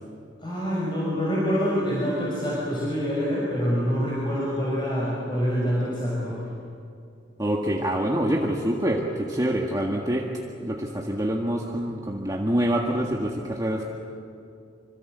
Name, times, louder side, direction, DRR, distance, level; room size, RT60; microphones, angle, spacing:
voice 1, 0.4-6.4, equal, 25° left, -6 dB, 6.2 m, -26 dB
voice 2, 7.4-10.3 10.6-13.9, right 1 dB, 20° right, -1 dB, 1.7 m, -26 dB
26.5 x 25.5 x 8.0 m, 2.5 s
head